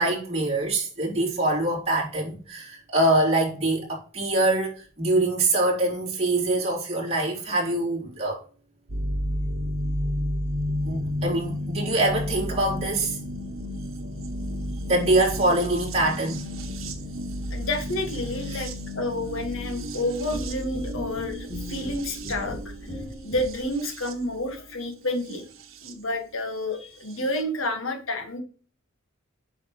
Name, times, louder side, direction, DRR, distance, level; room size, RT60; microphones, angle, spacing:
voice 1, 0.0-8.4 10.8-13.2 14.9-16.4 18.5-18.6, right 2 dB, 30° right, 3.5 m, -24 dB
sound 1, 8.9-25.9 27.1-27.2, equal, 80° right, 1.3 m, -32 dB
voice 2, 17.5-25.5 25.8-28.4, left 1 dB, 75° left, 1.9 m, -30 dB
sound 2, 20.3-23.8, left 2 dB, 55° left, 2.4 m, -37 dB
8.4 x 5.7 x 3.2 m
head